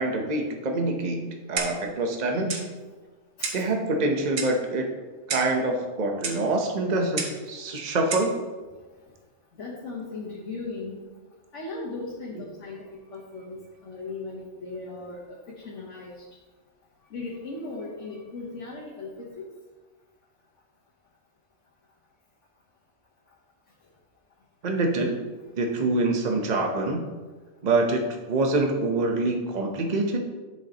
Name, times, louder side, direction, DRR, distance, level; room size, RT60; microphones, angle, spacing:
voice 1, 0.0-2.7 3.5-4.9 5.3-8.3 24.6-25.2 25.6-27.0 27.6-30.2, right 2 dB, 40° right, 2 dB, 1.0 m, -25 dB
Clock, 1.6-1.9 2.5-2.7 3.4-3.7 4.4-4.6 5.3-5.6 6.2-6.4 7.2-7.4 8.1-8.3, right 4 dB, 85° right, 1.4 m, -31 dB
voice 2, 9.6-11.0 11.5-12.8 13.1-16.1 17.1-19.5, left 3 dB, 75° left, -4 dB, 1.5 m, -37 dB
11.0 x 6.3 x 2.9 m, 1.3 s
omnidirectional pair, 1.2 m